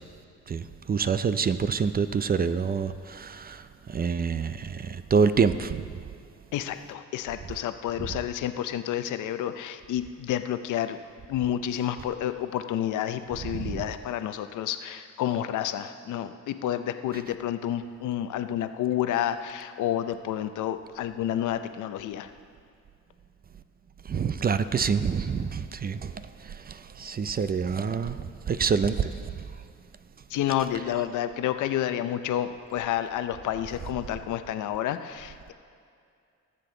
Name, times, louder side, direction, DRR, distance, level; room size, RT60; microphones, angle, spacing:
voice 1, 0.5-3.6 3.9-5.8 13.5-13.8 24.1-26.1 27.0-28.2 28.5-29.1, right 6 dB, 30° right, 12 dB, 0.5 m, -26 dB
voice 2, 6.5-11.0 11.3-22.3 30.3-35.5, left 11 dB, 80° left, 10 dB, 0.7 m, -30 dB
19.5 x 7.7 x 3.9 m, 2.3 s
cardioid pair, 90°, 30 cm